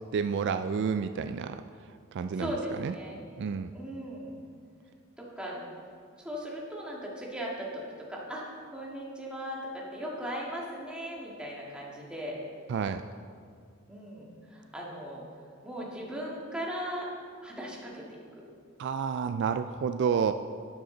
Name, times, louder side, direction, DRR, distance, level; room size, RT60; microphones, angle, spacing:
voice 1, 0.1-1.6 2.1-2.9 3.4-3.7 12.7-13.0 18.8-20.3, right 6 dB, 55° right, 10 dB, 0.3 m, -30 dB
voice 2, 2.3-3.2 3.7-4.4 5.2-5.6 6.2-7.8 8.1-12.4 13.9-15.2 15.6-17.1 17.4-18.2, equal, 5° right, -4 dB, 1.9 m, -38 dB
12.0 x 9.6 x 3.9 m, 2.2 s
head